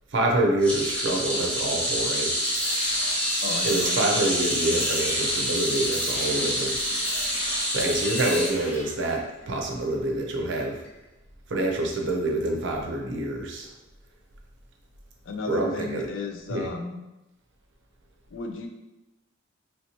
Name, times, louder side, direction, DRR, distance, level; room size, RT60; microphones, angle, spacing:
voice 1, 0.1-2.3 3.6-6.8 7.7-10.8 11.5-13.7 15.5-16.1 16.5-16.7, right 1 dB, 65° right, 1 dB, 0.6 m, -26 dB
sound 1, 0.6-9.1 9.4-9.7 10.9-11.0, equal, 5° left, 0.7 m, -27 dB
sound 2, 2.4-8.8, left 1 dB, 85° left, 1.1 m, -39 dB
voice 2, 3.4-4.0 15.3-17.0 18.3-18.7, left 3 dB, 70° left, 4 dB, 0.4 m, -34 dB
3.1 x 2.8 x 2.8 m, 0.99 s
head